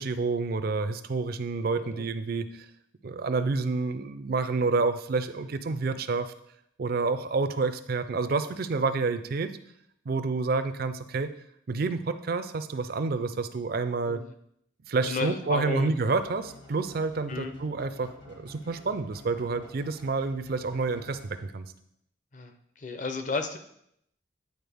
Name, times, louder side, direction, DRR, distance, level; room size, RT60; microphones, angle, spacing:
voice 1, 0.0-2.7 3.0-6.3 6.8-9.6 10.1-11.3 11.7-14.2 14.9-21.7, right 4 dB, 50° right, 11 dB, 0.4 m, -29 dB
voice 2, 1.7-2.1 5.7-5.8 14.1-14.3 15.0-15.9 17.3-17.6 22.3-23.6, left 3 dB, 40° left, 8 dB, 0.6 m, -33 dB
sound 1, 16.0-21.7, left 1 dB, 70° left, 2.5 m, -51 dB
9.4 x 4.2 x 3.5 m, 0.73 s
head